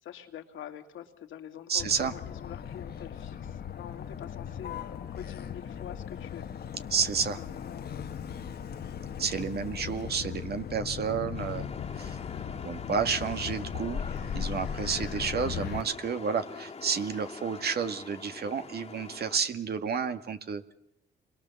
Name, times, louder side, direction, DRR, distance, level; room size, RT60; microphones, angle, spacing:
voice 1, 0.0-6.5 7.4-8.0, left 10 dB, 80° left, 4 dB, 2.6 m, -45 dB
voice 2, 1.7-2.1 6.9-7.4 9.2-11.7 12.0-12.2 12.6-14.0 14.3-20.7, right 6 dB, 55° right, 8 dB, 2.0 m, -31 dB
Motor vehicle (road), 1.8-15.8, left 8 dB, 55° left, 1.5 m, -38 dB
sound 1, 11.3-19.4, left 5 dB, 30° left, 2.1 m, -44 dB
29.0 x 22.0 x 7.2 m, 0.78 s
cardioid pair, 90°, 20 cm